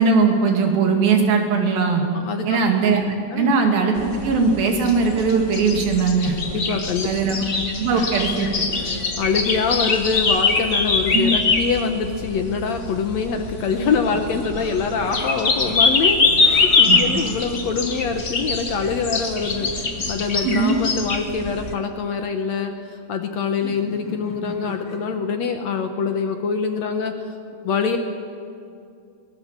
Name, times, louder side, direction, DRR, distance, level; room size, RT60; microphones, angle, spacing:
voice 1, 0.0-2.0 2.5-6.4 7.0-8.7 11.1-11.3 16.9-17.0 20.4-20.8, right 4 dB, 80° right, 3 dB, 4.1 m, -20 dB
voice 2, 2.1-2.6 3.3-3.5 6.5-7.1 7.9-8.1 8.9-27.2 27.6-28.0, left 5 dB, 65° left, 6 dB, 1.9 m, -24 dB
sound 1, 4.0-21.7, left 4 dB, 45° left, 0.9 m, -23 dB
sound 2, 13.7-17.5 19.4-20.8 23.6-25.2, left 1 dB, 80° left, 8.4 m, -38 dB
23.0 x 19.5 x 7.4 m, 2.5 s
omnidirectional pair, 4.1 m